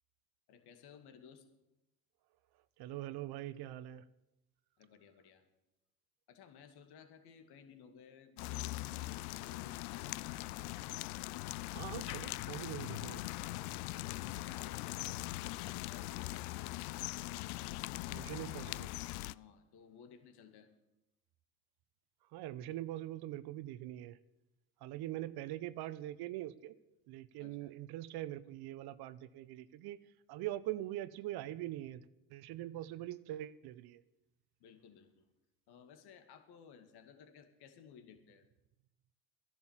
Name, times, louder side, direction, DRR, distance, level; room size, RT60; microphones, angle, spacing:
voice 1, 0.5-1.5 4.8-5.5 6.3-10.1 14.0-16.3 17.7-18.0 19.3-20.7 27.4-27.7 34.6-35.3 35.7-38.5, left 7 dB, 60° left, 7 dB, 2.4 m, -58 dB
voice 2, 2.8-4.0 11.7-13.2 18.1-18.9 22.3-24.2 24.8-26.8 27.1-30.0 30.3-32.0 32.3-34.0, right 14 dB, 60° right, 16 dB, 1.0 m, -43 dB
sound 1, 8.4-19.3, left 19 dB, 80° left, 0.6 m, -41 dB
14.5 x 11.0 x 7.4 m, 0.91 s
hypercardioid pair, 80°, 44 cm